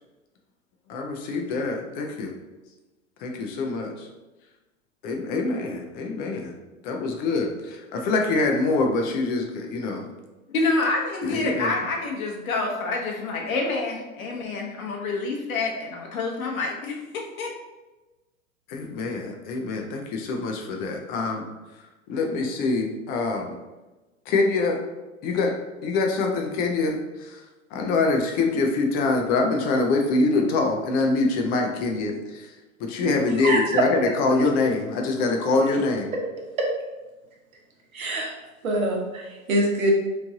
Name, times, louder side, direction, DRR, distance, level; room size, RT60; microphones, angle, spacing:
voice 1, 0.9-2.3 3.2-4.1 5.0-6.5 6.8-10.1 11.3-11.7 18.7-21.5 22.1-23.5 24.3-24.8 25.2-25.5 25.8-27.4 27.7-32.5 32.8-36.1, left 3 dB, 25° left, 2 dB, 0.3 m, -25 dB
voice 2, 10.5-17.5, left 3 dB, 80° left, 1 dB, 1.0 m, -27 dB
voice 3, 33.3-34.1 36.6-36.7 37.9-38.3 38.6-39.9, right 2 dB, 80° right, 0 dB, 1.0 m, -25 dB
3.1 x 2.5 x 3.6 m, 1.1 s
hypercardioid pair, 110°, 41 cm